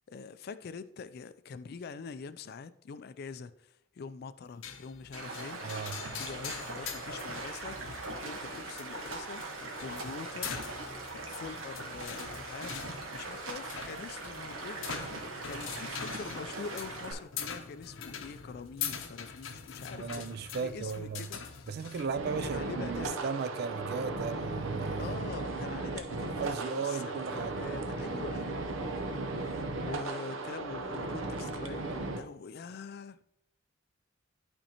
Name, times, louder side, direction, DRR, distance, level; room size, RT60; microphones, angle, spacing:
voice 1, 0.1-5.6 6.2-10.9 11.3-12.7 13.1-20.3 20.6-21.7 22.4-23.2 25.0-26.3 26.7-33.2, left 5 dB, 50° left, 0.3 m, -45 dB
sound 1, 4.6-22.1, left 6 dB, 80° left, 0.7 m, -43 dB
Stream, 5.1-17.1, right 2 dB, 90° right, 1.3 m, -41 dB
voice 2, 5.6-6.0 19.9-21.3 21.7-25.2 26.4-27.6, right 5 dB, 50° right, 0.3 m, -36 dB
sound 2, 22.2-32.2, right 2 dB, 75° right, 0.7 m, -36 dB
11.5 x 4.3 x 2.9 m
head